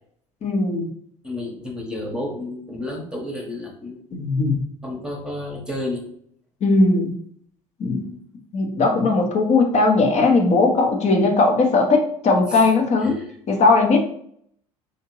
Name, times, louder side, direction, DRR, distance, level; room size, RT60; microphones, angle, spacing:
voice 1, 0.4-0.9 4.1-4.6 6.6-7.2 7.8-8.0 8.5-13.2 13.5-14.0, left 3 dB, 40° left, 3 dB, 0.9 m, -18 dB
voice 2, 1.2-4.0 4.8-6.1 8.0-8.2 12.5-12.6 13.0-13.3, left 1 dB, 5° right, -1 dB, 1.1 m, -31 dB
3.4 x 2.9 x 3.0 m, 0.65 s
figure-of-eight pair, 65°, 19 cm